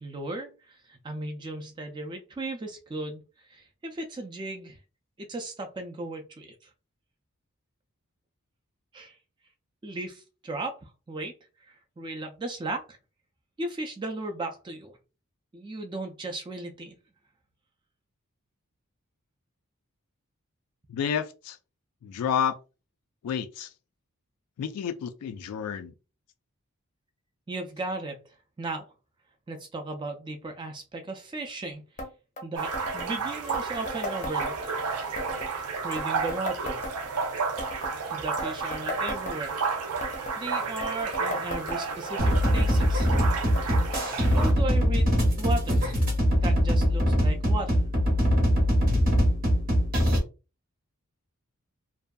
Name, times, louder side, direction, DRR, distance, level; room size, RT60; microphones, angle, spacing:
voice 1, 0.0-3.2 3.5-4.8 5.2-6.7 8.9-9.2 9.8-11.3 11.6-13.0 13.6-15.0 15.5-16.9 27.5-28.2 28.6-28.9 29.5-31.8 32.4-34.6 35.4-35.5 35.8-36.8 38.1-39.6 40.4-43.1 44.3-45.8 46.4-47.8, right 2 dB, 20° right, 0.3 m, -36 dB
voice 2, 20.9-21.6 22.0-22.6 23.2-23.7 24.6-25.9, left 8 dB, 85° left, 0.3 m, -30 dB
sound 1, 32.0-32.1 32.4-32.5 32.7-33.1 33.5-34.9 35.2-35.5 35.9-37.3 37.6-38.0 38.3-39.7 40.0-40.4 40.8-42.1 42.4-42.8 43.2-43.7 43.9-44.1 44.3-44.4 45.2-45.3 46.1-46.2, left 1 dB, 30° left, 0.5 m, -36 dB
sound 2, 32.5-44.5, right 4 dB, 85° right, 0.5 m, -32 dB
sound 3, 42.2-50.2, equal, 40° right, 0.7 m, -23 dB
2.6 x 2.2 x 2.2 m
head